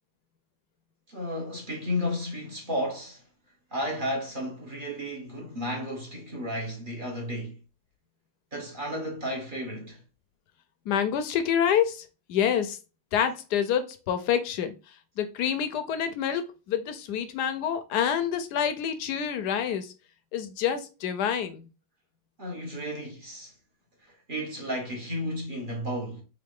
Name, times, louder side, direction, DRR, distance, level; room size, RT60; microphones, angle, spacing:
voice 1, 1.1-3.2 3.7-7.5 8.5-10.0 22.4-23.5 24.3-26.2, equal, 30° right, 1.3 m, -33 dB
voice 2, 10.9-12.8 13.1-14.7 15.2-19.9 20.3-21.7, left 8 dB, 70° left, 1.1 m, -27 dB
3.8 x 3.7 x 3.6 m
omnidirectional pair, 2.0 m